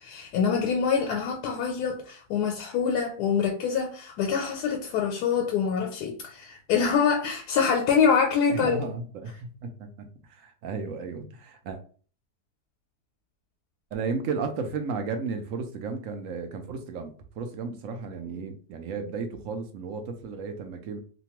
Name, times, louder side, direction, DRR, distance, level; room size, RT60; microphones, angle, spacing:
voice 1, 0.0-8.8, left 6 dB, 90° left, 1.1 m, -25 dB
voice 2, 8.5-11.8 13.9-21.0, right 4 dB, 70° right, 0.9 m, -34 dB
2.8 x 2.2 x 2.9 m
omnidirectional pair, 1.6 m